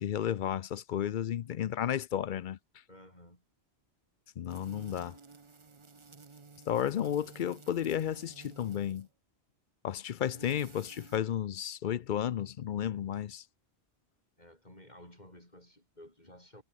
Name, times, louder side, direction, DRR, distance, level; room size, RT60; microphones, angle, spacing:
voice 1, 0.0-2.6 4.4-5.2 6.7-9.1 9.8-13.4, left 10 dB, 55° left, 0.6 m, -33 dB
voice 2, 2.9-3.4 14.4-16.6, left 1 dB, 40° left, 6.9 m, -54 dB
sound 1, 4.5-9.1 10.0-11.2, right 4 dB, 30° right, 0.9 m, -53 dB
omnidirectional pair, 1.1 m